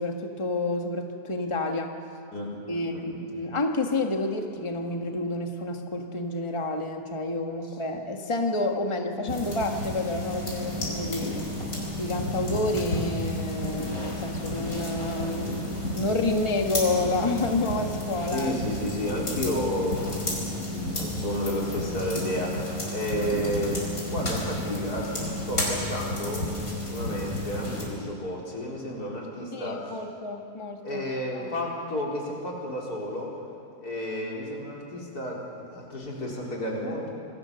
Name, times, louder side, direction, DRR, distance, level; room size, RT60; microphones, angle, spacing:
voice 1, 0.0-1.9 2.7-11.4 12.0-18.5 29.5-31.0 31.3-31.5, left 2 dB, 20° left, 3 dB, 1.5 m, -29 dB
voice 2, 2.3-3.2 18.3-30.0 30.8-33.3 33.8-37.1, left 1 dB, 85° left, -3 dB, 4.7 m, -32 dB
sound 1, 9.3-27.8, left 1 dB, 65° left, 5.3 m, -32 dB
27.0 x 20.5 x 6.9 m, 2.6 s
omnidirectional pair, 1.6 m